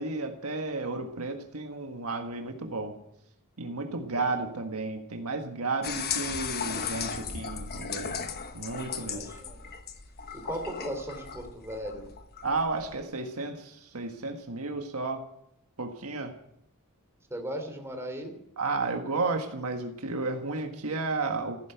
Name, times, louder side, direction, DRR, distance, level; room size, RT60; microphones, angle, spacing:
voice 1, 0.0-2.9 3.6-8.2 8.5-9.3 12.4-15.3 15.8-16.3 18.6-21.7, right 3 dB, 75° right, 5 dB, 1.6 m, -33 dB
sound 1, 5.8-13.0, left 6 dB, 45° left, 1.2 m, -36 dB
voice 2, 8.9-9.6 10.3-12.1 17.3-18.3, right 1 dB, 10° right, 4 dB, 3.1 m, -37 dB
15.5 x 10.5 x 7.9 m, 0.75 s
head